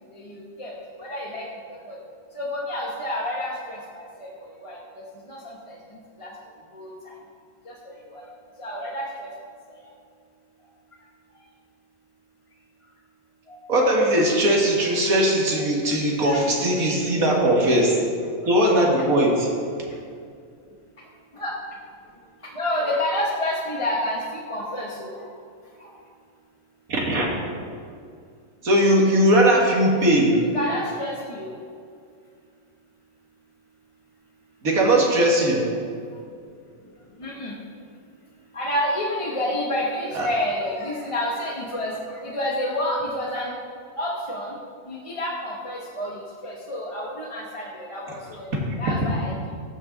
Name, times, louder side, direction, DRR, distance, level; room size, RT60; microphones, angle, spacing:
voice 1, 0.1-0.7 1.0-2.0 2.3-4.8 5.3-5.4 5.7-5.8 6.2-6.3 6.7-7.1 7.7-8.2 8.6-9.0 13.5-13.6 16.2-16.4 16.8-17.1 21.3-21.5 22.5-25.2 30.5-31.5 37.2-37.5 38.5-43.5 44.0-44.6 44.9-48.5 48.8-49.5, left 1 dB, 25° left, -4 dB, 1.0 m, -29 dB
voice 2, 13.7-18.0 18.5-19.5 26.9-27.3 28.6-30.4 34.6-35.7 40.1-40.3 48.7-48.8, right 1 dB, 85° right, -2 dB, 2.1 m, -19 dB
14.5 x 6.1 x 4.0 m, 2.3 s
omnidirectional pair, 1.5 m